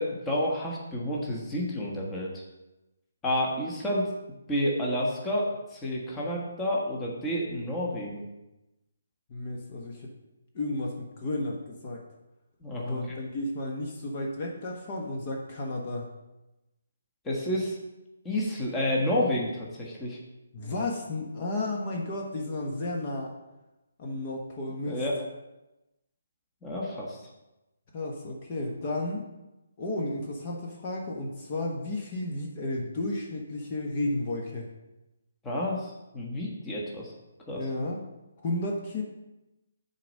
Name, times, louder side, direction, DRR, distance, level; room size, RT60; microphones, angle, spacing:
voice 1, 0.0-2.4 3.2-4.1 4.5-8.2 12.6-13.2 17.2-17.8 18.2-20.2 24.9-25.2 26.6-27.2 35.4-37.1 37.5-37.6, left 1 dB, 10° left, -3 dB, 1.4 m, -30 dB
voice 2, 9.3-10.1 10.5-12.0 12.8-16.1 20.5-23.3 24.0-25.0 27.9-29.2 29.8-34.7 37.5-38.0 38.4-39.0, left 2 dB, 35° left, -1 dB, 1.3 m, -33 dB
7.4 x 4.2 x 6.4 m, 0.99 s
figure-of-eight pair, 145°, 0 cm